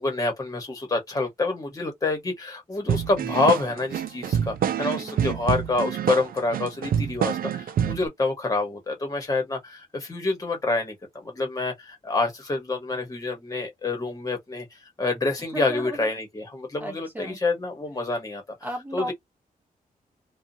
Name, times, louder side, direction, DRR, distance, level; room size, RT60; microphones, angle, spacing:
voice 1, 0.0-14.7 15.0-18.4 18.9-19.1, left 3 dB, 25° left, 1.1 m, -27 dB
sound 1, 2.9-8.1, right 9 dB, 75° right, 0.4 m, -26 dB
voice 2, 5.0-5.4 15.5-16.1 16.8-17.4 18.6-19.1, right 1 dB, 10° right, 0.8 m, -35 dB
2.8 x 2.3 x 2.6 m
wide cardioid pair, 155°, 15 cm